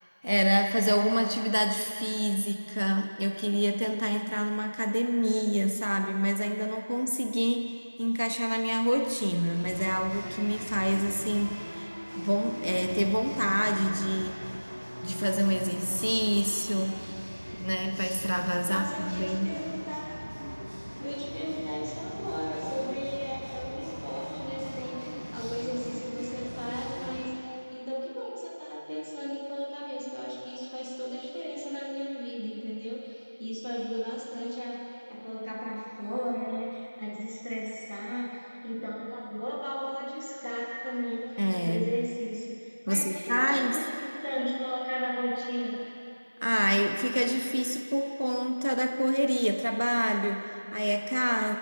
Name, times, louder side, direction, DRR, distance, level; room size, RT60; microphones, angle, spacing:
voice 1, 0.2-14.4 15.0-17.0 17.5-19.5 41.4-41.9 42.9-43.8 46.4-51.6, equal, 75° right, 5 dB, 1.0 m, -27 dB
sound 1, 9.5-27.2, equal, 25° right, 3.0 m, -40 dB
voice 2, 18.6-20.2 21.0-34.8 35.1-45.8, equal, 20° left, -5 dB, 1.5 m, -35 dB
28.5 x 9.9 x 2.8 m, 2.7 s
figure-of-eight pair, 180°, 0 cm